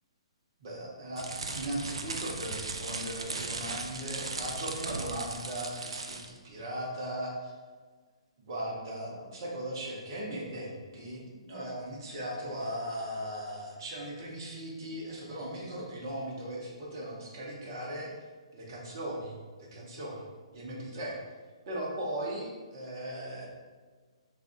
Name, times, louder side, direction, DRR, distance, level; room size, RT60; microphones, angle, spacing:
voice 1, 0.6-7.5 8.5-18.1 18.5-21.2 21.7-23.5, right 1 dB, 40° right, -3 dB, 0.9 m, -38 dB
sound 1, 1.2-6.4, right 3 dB, 65° right, 0.4 m, -37 dB
3.4 x 2.4 x 3.8 m, 1.5 s
figure-of-eight pair, 125°, 3 cm